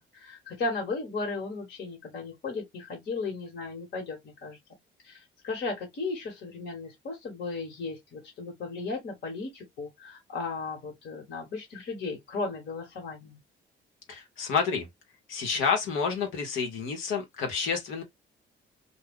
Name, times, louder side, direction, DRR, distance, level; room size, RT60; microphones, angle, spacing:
voice 1, 0.1-4.6 5.0-13.4, left 3 dB, 55° left, 1.3 m, -35 dB
voice 2, 14.1-14.9 15.3-18.0, left 5 dB, 90° left, 1.0 m, -29 dB
2.3 x 2.2 x 3.5 m
cardioid pair, 90°, 20 cm